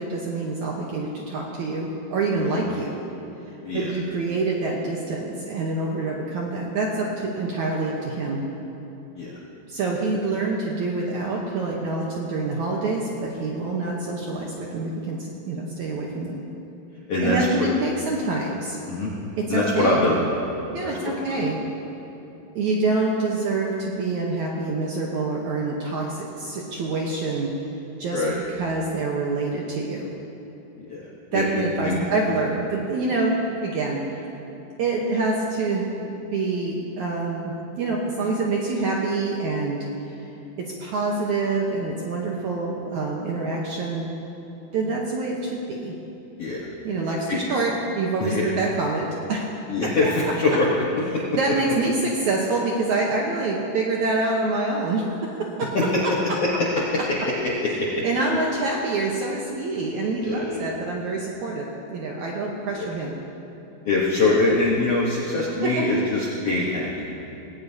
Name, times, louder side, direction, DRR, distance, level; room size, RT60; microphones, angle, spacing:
voice 1, 0.0-3.1 3.7-8.4 9.7-15.2 15.4-16.4 17.2-18.8 19.4-20.1 20.7-21.6 22.6-27.5 28.0-28.2 28.5-30.2 31.3-34.3 34.8-39.9 40.6-44.1 44.7-46.0 46.8-49.5 49.8-50.3 51.3-55.7 56.0-56.1 58.0-63.1 65.6-65.8, right 3 dB, 70° right, -2 dB, 1.9 m, -26 dB
voice 2, 17.1-17.7 18.9-19.1 19.5-20.2 20.8-21.4 28.1-28.4 30.9-32.0 46.4-46.7 47.3-47.4 48.2-48.5 49.7-50.7 51.1-51.4 55.7-56.0 56.4-56.5 57.4-58.0 60.2-60.6 62.7-62.9 63.8-67.1, left 2 dB, 65° left, -5 dB, 1.5 m, -24 dB
18.5 x 17.5 x 2.8 m, 3.0 s
omnidirectional pair, 4.6 m